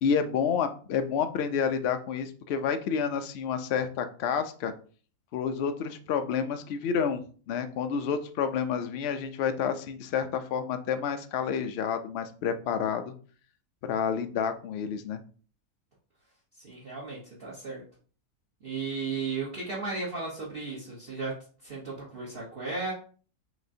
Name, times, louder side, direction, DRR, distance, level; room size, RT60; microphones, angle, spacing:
voice 1, 0.0-4.7 5.3-13.1 13.9-15.2, left 7 dB, 85° left, 8 dB, 0.5 m, -29 dB
voice 2, 16.5-17.8 18.6-22.9, right 4 dB, 40° right, -6 dB, 1.2 m, -35 dB
5.9 x 2.9 x 2.7 m, 0.41 s
omnidirectional pair, 1.7 m